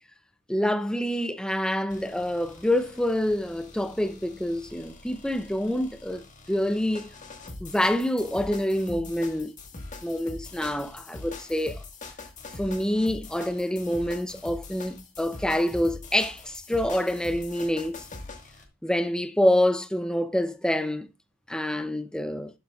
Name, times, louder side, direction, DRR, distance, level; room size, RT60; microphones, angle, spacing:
voice 1, 0.5-7.1 7.6-9.5 10.0-11.8 12.6-18.0 18.8-21.1 21.5-22.5, left 1 dB, 5° left, 0.5 m, -26 dB
sound 1, 1.9-18.7, left 3 dB, 35° left, 1.6 m, -43 dB
11.5 x 7.3 x 2.4 m
head